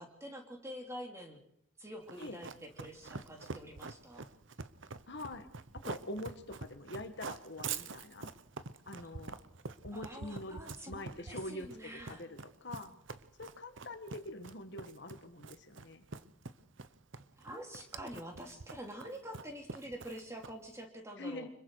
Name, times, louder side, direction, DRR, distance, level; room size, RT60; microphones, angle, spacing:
voice 1, 0.0-1.4 1.8-4.2 9.9-12.3 17.4-21.5, equal, 15° right, 2 dB, 2.9 m, -47 dB
Run, 2.1-20.7, right 4 dB, 65° right, 0.9 m, -45 dB
voice 2, 5.1-5.5 5.8-8.3 8.9-9.4 9.8-10.6 10.9-12.9 13.4-16.0 21.2-21.5, left 1 dB, 55° left, 8 dB, 1.7 m, -44 dB
25.5 x 22.0 x 4.8 m, 0.73 s
head